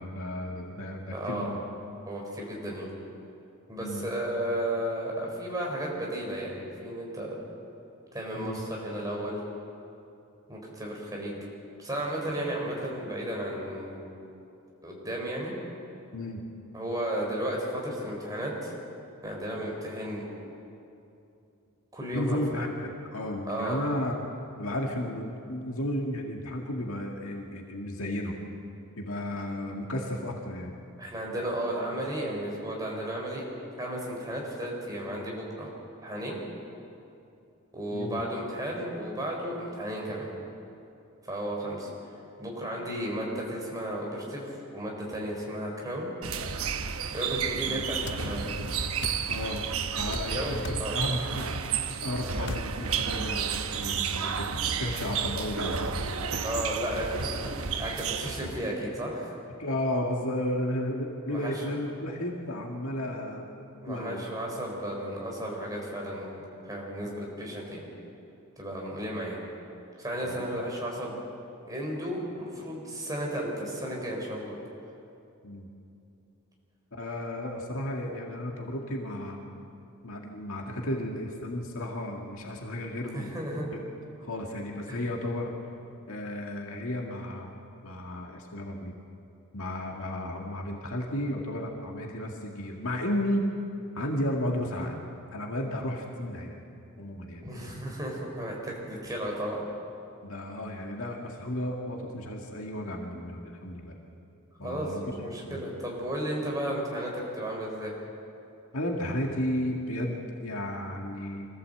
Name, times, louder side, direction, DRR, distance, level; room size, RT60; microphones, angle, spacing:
voice 1, 0.0-1.6 3.8-4.1 8.3-8.6 16.1-16.4 22.1-24.2 24.6-28.4 29.0-30.7 37.9-38.2 47.7-48.1 48.4-48.6 49.3-49.6 50.0-51.5 52.0-54.5 54.8-56.1 59.6-63.5 63.9-64.2 67.0-67.1 70.2-70.4 75.4-75.7 76.9-79.4 80.0-83.4 83.7-83.8 84.2-85.6 86.1-87.5 87.8-88.9 89.5-93.6 94.0-95.0 95.3-96.6 97.0-97.5 100.2-103.9 104.6-105.6 108.7-111.5, left 1 dB, 70° left, 0 dB, 2.0 m, -33 dB
voice 2, 1.1-1.5 2.1-2.9 3.7-7.3 8.1-9.4 10.5-11.3 11.8-14.3 14.8-15.5 16.7-18.7 19.2-20.3 21.9-22.4 23.5-23.8 31.0-33.4 33.8-35.7 36.0-36.4 37.7-40.3 41.2-41.9 42.4-46.1 47.1-48.4 50.1-51.0 56.4-59.3 61.3-61.7 63.8-67.8 68.6-69.4 70.0-71.2 71.6-74.5 83.0-83.7 84.9-85.1 97.4-99.6 104.6-107.9, right 1 dB, 15° right, -2 dB, 4.4 m, -34 dB
sound 1, 46.2-58.7, right 6 dB, 75° right, 1.0 m, -32 dB
sound 2, 48.1-48.2 49.0-49.2 50.1-50.3 50.6-50.9 52.4-52.7, left 4 dB, 55° left, 0.6 m, -38 dB
25.0 x 15.5 x 7.8 m, 2.7 s
head